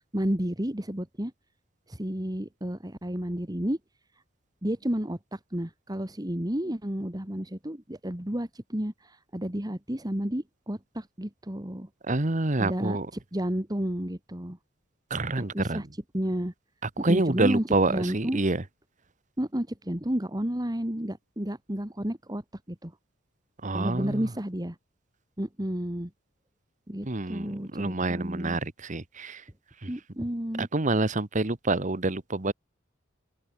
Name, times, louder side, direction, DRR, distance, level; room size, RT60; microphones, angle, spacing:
voice 1, 0.1-1.3 1.9-3.8 4.6-11.9 12.6-14.6 15.4-16.5 17.0-18.4 19.4-22.4 22.7-22.9 23.7-24.8 25.4-26.1 26.9-28.6 29.9-30.7, equal, 20° right, 2.2 m, -31 dB
voice 2, 12.1-13.1 15.1-15.8 17.0-18.6 23.6-24.2 27.1-29.4 30.6-32.5, right 2 dB, 40° right, 1.4 m, -27 dB
open air
head